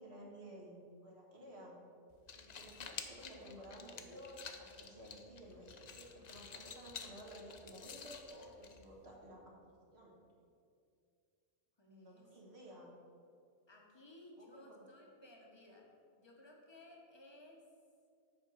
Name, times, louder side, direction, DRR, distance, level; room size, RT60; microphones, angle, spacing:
voice 1, 0.0-1.8 2.3-9.6 9.9-10.2 11.9-12.9 14.4-14.9, equal, 60° right, -2 dB, 1.7 m, -54 dB
sound 1, 2.1-9.1, left 6 dB, 50° left, 0.5 m, -51 dB
voice 2, 11.8-12.4 13.7-17.6, left 1 dB, 25° left, 0 dB, 1.1 m, -59 dB
8.3 x 4.5 x 6.2 m, 2.4 s
omnidirectional pair, 1.3 m